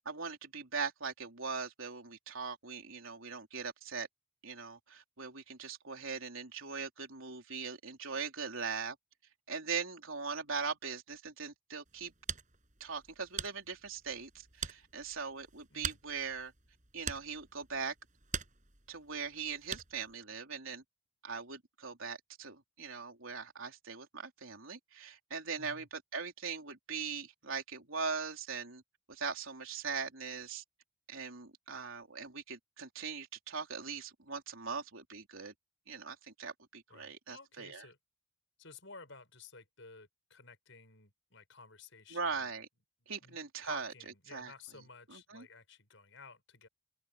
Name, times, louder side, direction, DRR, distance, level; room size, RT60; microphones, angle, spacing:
voice 1, 0.1-4.1 4.4-9.0 9.5-12.1 12.8-16.5 16.9-17.9 18.9-20.8 21.2-28.8 29.1-30.6 31.1-35.5 35.9-37.8 42.1-42.7 43.1-43.9 44.3-44.5 45.1-45.5, right 5 dB, 70° right, 3.8 m, -40 dB
sound 1, 11.8-20.1, right 7 dB, 35° right, 6.3 m, -45 dB
voice 2, 25.6-25.9 36.9-38.0 38.6-42.5 43.2-46.7, left 4 dB, 60° left, 6.9 m, -54 dB
open air
head